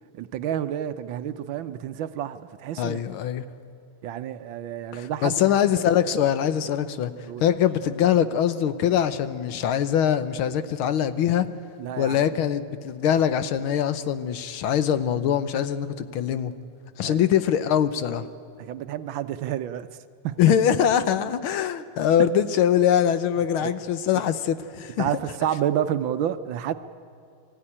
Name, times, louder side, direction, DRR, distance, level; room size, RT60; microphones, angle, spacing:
voice 1, 0.1-3.0 4.0-5.4 7.3-7.4 11.8-12.3 17.0-17.2 18.6-19.9 20.2-20.4 23.6-23.7 24.1-24.2 25.0-26.7, right 10 dB, 70° right, 11 dB, 1.4 m, -29 dB
voice 2, 2.8-3.5 4.9-7.1 7.4-11.5 12.0-16.5 17.0-18.3 20.4-25.1, left 9 dB, 75° left, 12 dB, 1.7 m, -23 dB
24.0 x 15.0 x 9.9 m, 2.5 s
omnidirectional pair, 2.3 m